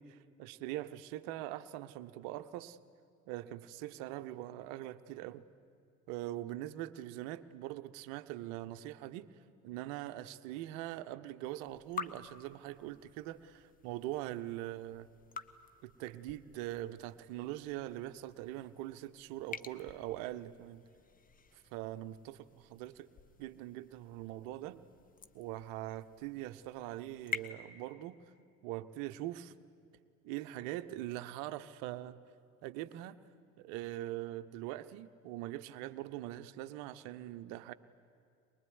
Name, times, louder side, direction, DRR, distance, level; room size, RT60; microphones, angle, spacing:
voice 1, 0.0-2.8 3.3-5.4 6.1-9.3 9.6-15.1 15.8-20.8 21.5-23.1 23.4-24.8 25.3-28.2 28.6-29.5 30.2-32.2 32.6-33.2 33.6-37.7, right 14 dB, 55° right, 12 dB, 1.0 m, -42 dB
sound 1, 11.6-27.5, left 5 dB, 20° left, 1.0 m, -49 dB
23.5 x 21.0 x 9.6 m, 2.5 s
figure-of-eight pair, 60°, 41 cm